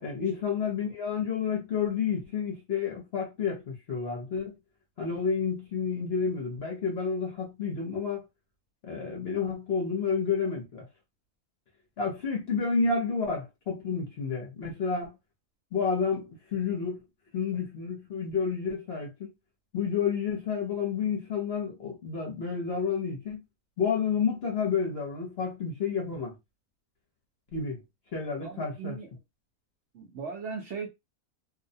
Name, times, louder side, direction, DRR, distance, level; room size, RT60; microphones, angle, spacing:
voice 1, 0.0-4.5 5.0-8.2 8.8-10.8 12.0-15.2 15.7-17.0 17.3-19.3 19.7-23.4 23.8-26.3 27.5-27.8 28.1-29.0, left 5 dB, 55° left, 0.9 m, -30 dB
voice 2, 28.4-29.1 29.9-30.9, right 5 dB, 60° right, 0.8 m, -38 dB
2.7 x 2.1 x 2.6 m
omnidirectional pair, 1.6 m